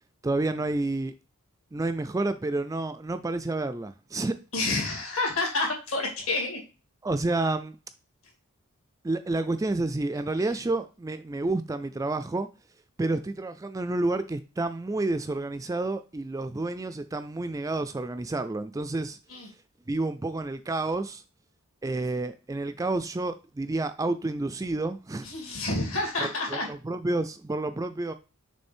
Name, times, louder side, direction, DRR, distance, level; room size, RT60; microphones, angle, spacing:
voice 1, 0.2-1.1 1.7-4.4 7.0-7.8 9.0-12.5 13.0-19.2 19.9-21.2 21.8-25.3 26.2-28.1, right 2 dB, 15° right, 0.3 m, -29 dB
voice 2, 4.5-6.6 10.4-10.5 19.3-19.5 25.2-26.7, left 2 dB, 70° left, 2.5 m, -29 dB
6.5 x 3.2 x 4.4 m
head